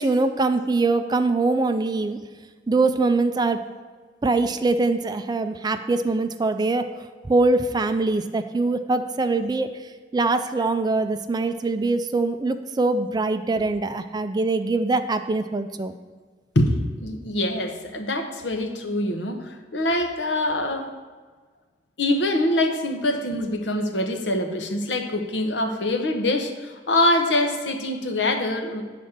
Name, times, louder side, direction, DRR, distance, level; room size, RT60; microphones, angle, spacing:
voice 1, 0.0-2.2 2.7-3.6 4.2-6.9 7.3-9.7 10.1-15.9, right 3 dB, 20° right, 9 dB, 0.4 m, -23 dB
voice 2, 17.0-20.9 22.0-28.8, left 1 dB, 75° left, 5 dB, 1.1 m, -24 dB
9.7 x 4.2 x 7.2 m, 1.4 s
head